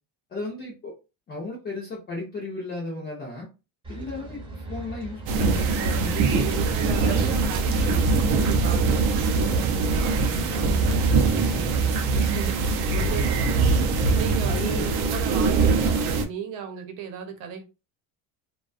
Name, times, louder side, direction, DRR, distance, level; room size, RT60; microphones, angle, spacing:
voice 1, 0.3-0.9 1.3-3.5 3.9-6.5 7.0-8.0 14.5-14.9, left 2 dB, 20° left, 0.4 m, -34 dB
sound 1, 3.8-16.1, right 3 dB, 10° right, 0.6 m, -35 dB
sound 2, 5.3-16.3, right 4 dB, 50° right, 0.5 m, -23 dB
voice 2, 6.1-7.9 8.3-11.1 11.5-13.8 14.1-14.8 15.1-17.6, right 7 dB, 65° right, 0.9 m, -36 dB
2.4 x 2.2 x 2.4 m
cardioid pair, 165°, 48 cm